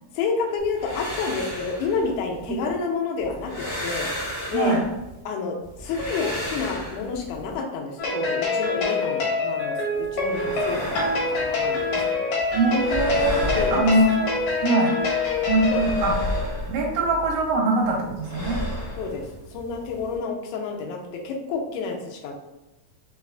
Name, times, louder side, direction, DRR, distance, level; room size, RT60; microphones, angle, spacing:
voice 1, 0.1-4.1 4.5-4.8 5.3-12.3 13.5-13.8 15.7-15.9 19.0-22.3, left 4 dB, 85° left, 1 dB, 2.0 m, -29 dB
sound 1, 0.6-2.8 3.2-5.2 5.6-7.5 9.9-12.1 12.4-14.6 15.0-17.5 17.8-20.2, equal, 55° left, 0.7 m, -33 dB
voice 2, 4.5-4.8 12.5-14.3 14.6-14.9 15.5-16.2 16.7-18.6, right 2 dB, 85° right, -1 dB, 2.0 m, -22 dB
sound 2, 8.0-16.4, left 3 dB, 70° left, 1.4 m, -25 dB
4.8 x 2.3 x 2.3 m, 1.0 s
omnidirectional pair, 3.4 m